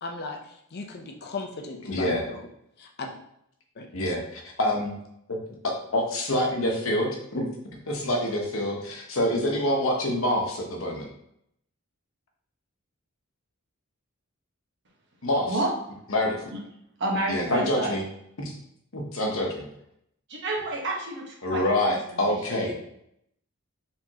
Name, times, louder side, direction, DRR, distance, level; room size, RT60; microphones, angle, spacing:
voice 1, 0.0-2.5 2.8-3.1 3.8-4.1, left 3 dB, 50° left, 3 dB, 0.6 m, -37 dB
voice 2, 1.9-2.2 3.9-4.9 5.3-7.4 7.9-11.1 15.2-15.6 16.1-16.4 17.3-18.0 18.4-18.5 18.9-19.7 21.4-22.8, left 1 dB, 65° left, 0 dB, 1.0 m, -26 dB
voice 3, 17.0-17.9 20.3-21.6 21.9-22.0 22.5-22.7, right 2 dB, 55° right, -2 dB, 1.2 m, -29 dB
4.6 x 3.6 x 2.9 m, 0.74 s
head